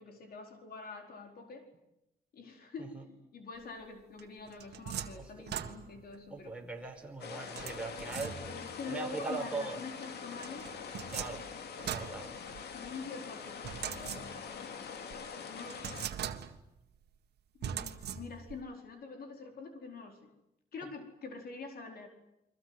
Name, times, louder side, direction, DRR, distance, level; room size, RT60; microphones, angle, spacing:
voice 1, 0.0-1.7 2.3-2.9 3.3-6.5 8.5-10.8 12.4-12.5 12.7-14.7 15.5-16.0 17.5-20.3 20.7-22.1, left 4 dB, 70° left, 3 dB, 4.5 m, -45 dB
sound 1, 4.2-6.2 7.6-8.8 10.4-12.9 13.6-14.6 15.1-15.2 15.7-16.8 17.6-18.6, right 9 dB, 85° right, 1.8 m, -41 dB
voice 2, 6.3-8.4 8.8-9.8 11.1-11.4 11.8-12.3, right 3 dB, 5° right, 1 dB, 5.2 m, -40 dB
sound 2, 7.2-16.1, left 6 dB, 85° left, 2.6 m, -44 dB
29.5 x 23.5 x 8.0 m, 0.88 s
cardioid pair, 115°, 17 cm